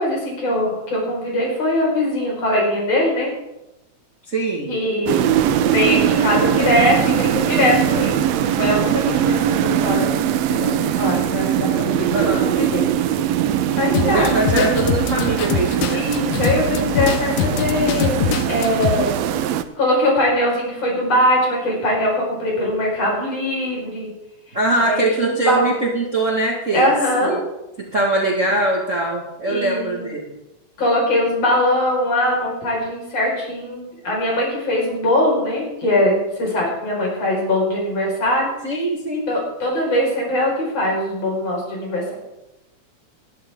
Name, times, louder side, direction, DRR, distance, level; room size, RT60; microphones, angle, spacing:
voice 1, 0.0-3.3 4.7-5.2 5.7-8.3 8.6-10.2 10.5-13.1 13.8-14.7 15.9-19.2 19.8-24.1 24.8-25.6 26.7-27.4 29.5-30.1 30.8-38.5 39.3-42.1, left 1 dB, 55° left, -2 dB, 5.7 m, -21 dB
voice 2, 4.3-4.7 12.1-12.5 14.0-16.0 24.5-26.9 27.2-27.4 27.9-30.2 38.6-39.3, right 2 dB, 35° right, -2 dB, 1.5 m, -22 dB
sound 1, 5.1-19.6, right 10 dB, 75° right, 1.8 m, -21 dB
sound 2, 13.9-18.9, left 8 dB, 75° left, 2.1 m, -23 dB
20.0 x 11.5 x 3.6 m, 0.94 s
omnidirectional pair, 3.3 m